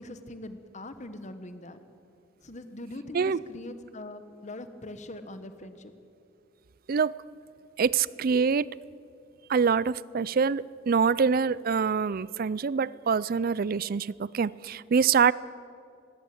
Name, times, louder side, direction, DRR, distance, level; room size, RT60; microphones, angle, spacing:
voice 1, 0.0-1.8 2.4-5.9, left 1 dB, 35° left, 1.3 m, -42 dB
voice 2, 7.8-8.7 9.5-15.3, right 6 dB, 45° right, 0.4 m, -25 dB
20.0 x 17.0 x 7.9 m
head